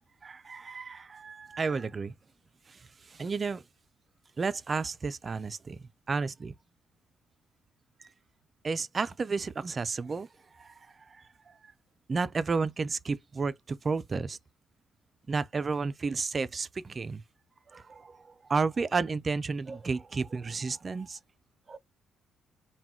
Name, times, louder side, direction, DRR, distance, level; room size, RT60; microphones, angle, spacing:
voice 1, 0.2-2.1 2.7-2.8 3.1-3.6 4.4-6.5 8.6-10.3 10.6-10.7 11.1-11.2 12.1-14.4 15.3-17.2 17.7-21.2 21.7-21.8, right 4 dB, 30° right, 0.4 m, -32 dB
3.7 x 2.2 x 4.3 m
cardioid pair, 120°, 0 cm